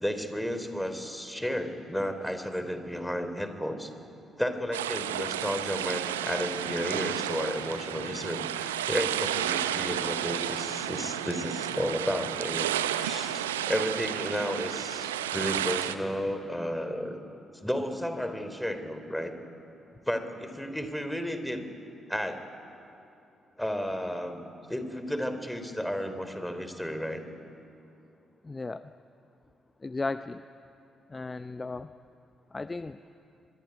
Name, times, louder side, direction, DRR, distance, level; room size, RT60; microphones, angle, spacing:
voice 1, 0.0-3.9 4.4-12.7 13.0-17.2 17.6-19.3 20.1-21.7 22.1-22.4 23.6-27.3, equal, 5° left, 8 dB, 3.5 m, -33 dB
sound 1, 4.7-15.9, right 11 dB, 80° right, 0.7 m, -32 dB
voice 2, 28.4-28.9 29.8-30.4 31.1-31.9 32.5-33.0, left 3 dB, 25° left, 12 dB, 0.7 m, -35 dB
24.5 x 22.0 x 9.6 m, 2.7 s
figure-of-eight pair, 40°, 0 cm